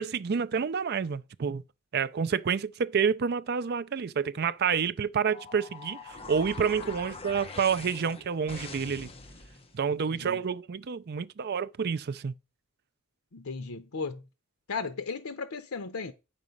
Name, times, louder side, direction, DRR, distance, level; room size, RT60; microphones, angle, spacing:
voice 1, 0.0-1.6 1.9-9.1 9.7-12.3, right 6 dB, 50° right, 0.4 m, -29 dB
sound 1, 5.2-9.8, left 4 dB, 25° left, 1.0 m, -44 dB
voice 2, 10.1-10.4 13.3-14.2 14.7-16.1, left 4 dB, 80° left, 0.8 m, -36 dB
8.7 x 6.0 x 5.3 m
head